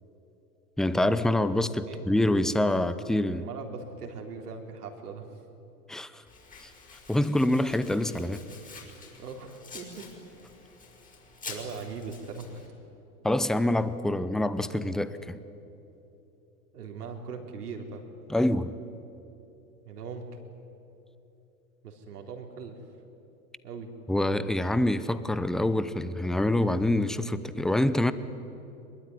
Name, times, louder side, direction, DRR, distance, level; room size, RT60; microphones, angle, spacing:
voice 1, 0.8-3.4 5.9-6.2 6.6-6.7 7.1-8.4 13.2-15.4 18.3-18.7 24.1-28.1, left 1 dB, ahead, 13 dB, 0.7 m, -26 dB
voice 2, 3.4-5.3 9.2-10.1 11.5-12.6 16.7-18.0 19.8-20.2 21.8-22.8 23.6-23.9, right 5 dB, 80° right, 3 dB, 4.2 m, -40 dB
Domestic sounds home sounds, 6.3-12.7, left 4 dB, 15° left, 5.7 m, -47 dB
23.5 x 22.0 x 9.9 m, 3.0 s
hypercardioid pair, 115°, 45 cm